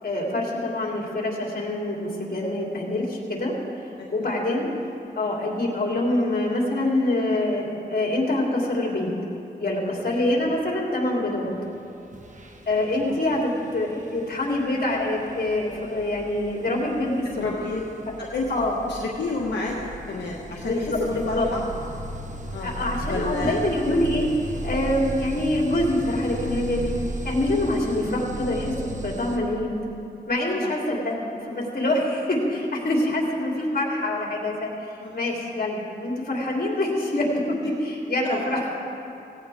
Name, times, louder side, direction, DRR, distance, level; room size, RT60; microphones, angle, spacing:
voice 1, 0.0-3.5 4.1-4.7 5.1-9.1 9.6-11.5 12.7-17.3 18.5-18.8 20.6-21.5 22.6-24.3 24.6-26.9 27.2-29.7 30.3-34.7 35.1-38.9, left 1 dB, 60° left, -2 dB, 3.3 m, -25 dB
voice 2, 4.0-4.3 4.8-4.9 10.2-10.5 13.0-13.3 17.4-17.8 18.2-18.5 18.9-19.8 20.1-21.6 22.5-22.7 23.0-23.6 30.6-30.7 35.0-35.2 38.3-38.5, left 3 dB, 85° left, -3 dB, 1.4 m, -31 dB
sound 1, 11.6-11.8 12.1-29.4, right 1 dB, 45° right, 1.4 m, -36 dB
17.5 x 17.0 x 3.6 m, 2.7 s
cardioid pair, 75°, 18 cm